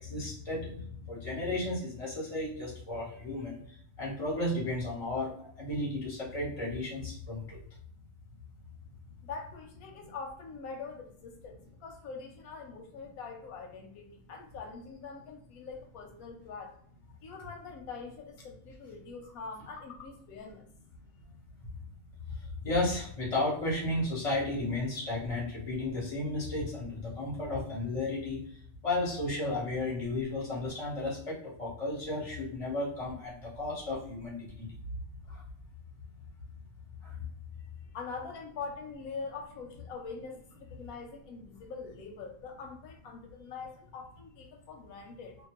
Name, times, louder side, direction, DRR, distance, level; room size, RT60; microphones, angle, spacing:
voice 1, 0.0-3.6 4.0-7.6 22.6-28.4 28.8-34.7 35.3-35.4, left 2 dB, 25° left, -5 dB, 1.2 m, -33 dB
voice 2, 9.2-16.8 17.2-20.7 37.6-37.7 37.9-45.4, left 4 dB, 90° left, 2 dB, 1.1 m, -43 dB
2.7 x 2.2 x 2.9 m, 0.63 s
omnidirectional pair, 1.5 m